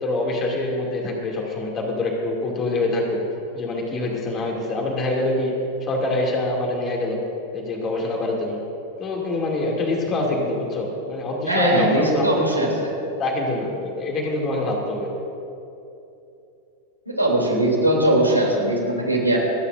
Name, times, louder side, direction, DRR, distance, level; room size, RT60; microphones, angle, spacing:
voice 1, 0.0-3.2 3.5-5.5 5.8-7.2 7.5-8.6 9.0-12.7 13.2-15.2, left 2 dB, 30° left, -1 dB, 2.6 m, -25 dB
voice 2, 11.5-12.9 17.1-19.4, right 1 dB, 90° right, -3 dB, 3.1 m, -20 dB
29.5 x 9.8 x 2.6 m, 2.8 s
figure-of-eight pair, 90°, 0 cm